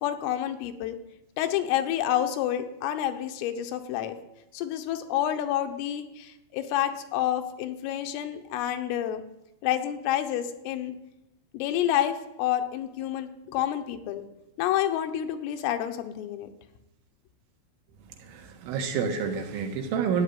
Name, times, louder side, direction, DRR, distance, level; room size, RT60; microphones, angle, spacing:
voice 1, 0.0-1.0 1.4-4.2 4.5-9.2 9.6-11.0 11.5-14.3 14.6-16.5, left 11 dB, 80° left, 7 dB, 3.7 m, -29 dB
voice 2, 18.3-20.2, right 6 dB, 75° right, 4 dB, 3.7 m, -28 dB
13.0 x 8.4 x 9.8 m, 0.89 s
omnidirectional pair, 5.9 m